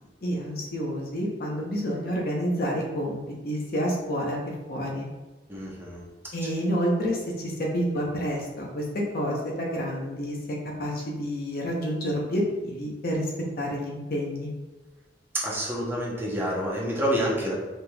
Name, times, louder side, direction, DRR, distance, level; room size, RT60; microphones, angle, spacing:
voice 1, 0.2-4.4 4.7-5.1 6.3-13.3 13.6-14.5, equal, 55° left, -1 dB, 0.8 m, -29 dB
voice 2, 5.5-6.0 15.4-17.5, equal, 15° right, -5 dB, 0.8 m, -28 dB
4.4 x 3.3 x 2.3 m, 1.1 s
head